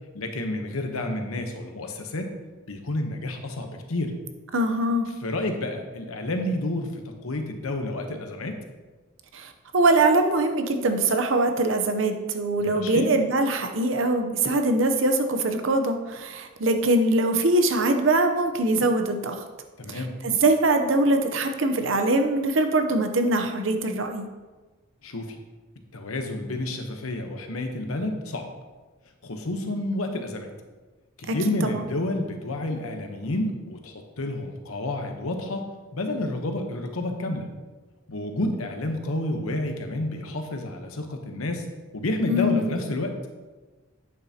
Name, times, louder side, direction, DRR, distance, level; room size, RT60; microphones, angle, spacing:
voice 1, 0.1-2.3 2.7-4.2 5.2-8.6 12.6-13.1 19.8-20.1 25.0-25.4 25.9-28.5 29.2-30.5 31.2-37.5 38.1-41.7 41.9-43.2, left 1 dB, 85° left, 4 dB, 1.0 m, -30 dB
voice 2, 4.5-5.1 9.3-19.5 19.9-24.3 31.3-31.4 31.6-31.9 42.3-42.8, right 2 dB, 65° right, 6 dB, 0.7 m, -23 dB
8.7 x 6.8 x 2.9 m, 1.3 s
head